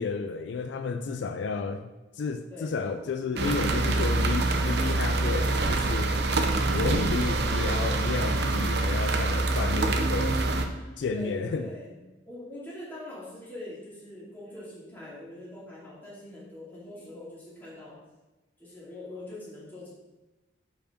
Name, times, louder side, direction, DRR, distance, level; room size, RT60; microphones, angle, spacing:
voice 1, 0.0-1.9 2.1-6.1 6.7-10.4 11.0-11.7, left 4 dB, 70° left, 8 dB, 0.3 m, -32 dB
voice 2, 2.5-3.5 7.4-7.5 9.4-12.0 12.2-18.0 18.6-19.9, left 1 dB, 10° left, -7 dB, 2.3 m, -44 dB
sound 1, 3.4-10.7, right 2 dB, 60° right, 0.6 m, -25 dB
5.1 x 4.8 x 5.0 m, 1.1 s
head